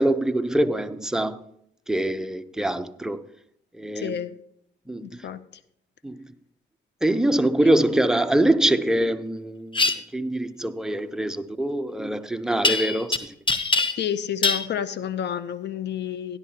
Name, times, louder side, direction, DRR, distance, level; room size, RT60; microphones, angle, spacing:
voice 1, 0.0-1.4 1.9-3.2 3.8-4.2 4.9-5.1 6.0-6.3 7.0-13.3, right 1 dB, 5° right, 0.5 m, -24 dB
voice 2, 4.0-4.3 5.0-5.4 7.6-7.7 14.0-16.4, left 9 dB, 60° left, 0.6 m, -29 dB
sound 1, 9.7-9.9 12.6-13.2 13.5-14.1 14.4-14.7, left 3 dB, 25° left, 0.8 m, -22 dB
13.5 x 10.5 x 2.8 m
cardioid pair, 90°, 20 cm